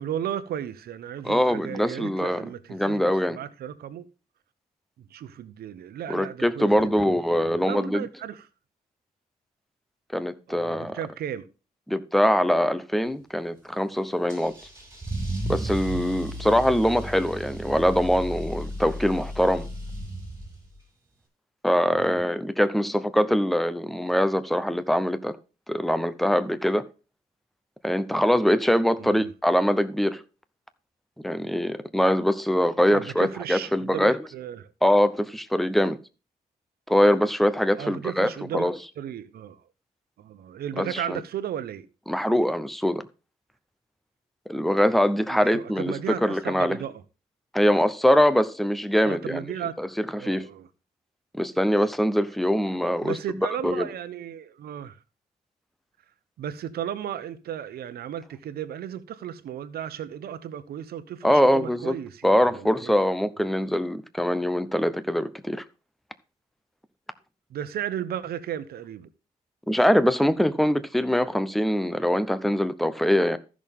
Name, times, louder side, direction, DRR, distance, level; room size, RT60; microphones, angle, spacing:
voice 1, 0.0-4.1 5.0-8.5 10.5-11.5 21.9-22.2 29.0-29.3 32.9-34.7 37.8-38.7 39.0-39.6 40.2-41.9 45.3-47.0 49.0-49.9 50.2-50.7 53.0-55.0 56.4-62.9 67.5-69.1, right 10 dB, 80° right, 1.0 m, -35 dB
voice 2, 1.2-2.4 2.7-3.4 6.1-8.0 10.1-11.0 11.9-14.5 15.5-19.7 21.6-25.4 25.7-26.8 27.8-30.2 31.2-34.2 34.8-36.0 36.9-38.3 38.5-38.8 40.8-41.2 42.1-43.0 44.5-46.8 47.5-49.4 49.8-50.5 51.3-53.1 53.6-53.9 61.2-62.0 62.2-65.6 69.7-73.4, equal, ahead, 0.7 m, -23 dB
Car / Engine starting / Accelerating revving vroom, 14.3-20.8, right 1 dB, 15° right, 5.4 m, -34 dB
14.0 x 6.3 x 3.6 m
cardioid pair, 120°, 16 cm